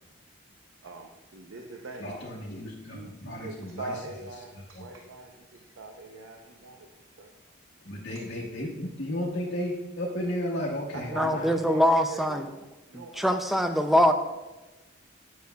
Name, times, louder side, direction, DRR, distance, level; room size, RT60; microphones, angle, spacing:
voice 1, 0.8-2.2 2.8-6.9 7.2-7.3 10.9-12.6 12.9-13.9, right 2 dB, 85° right, 2 dB, 0.6 m, -43 dB
voice 2, 2.0-3.9 4.7-4.9 7.8-11.7, left 1 dB, 60° left, -7 dB, 1.0 m, -34 dB
voice 3, 11.1-12.5 12.9-14.1, equal, ahead, 7 dB, 0.3 m, -23 dB
9.3 x 6.5 x 2.3 m, 1.1 s
head